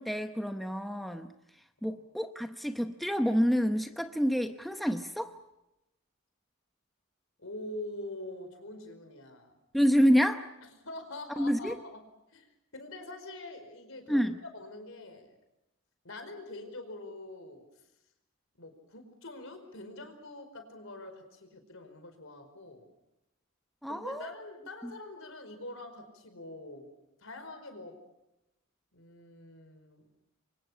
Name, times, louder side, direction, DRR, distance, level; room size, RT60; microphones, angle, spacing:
voice 1, 0.0-1.3 1.8-5.3 9.7-10.4 11.4-11.8 14.1-14.4 23.8-24.3 24.8-24.9, equal, ahead, 6 dB, 0.8 m, -28 dB
voice 2, 7.4-9.5 10.8-12.0 12.3-12.5 12.7-14.2 14.5-15.3 16.0-17.6 18.6-22.8 23.9-26.9 27.2-27.9 28.9-30.0, left 2 dB, 65° left, 7 dB, 4.9 m, -44 dB
28.5 x 24.5 x 5.6 m, 0.92 s
head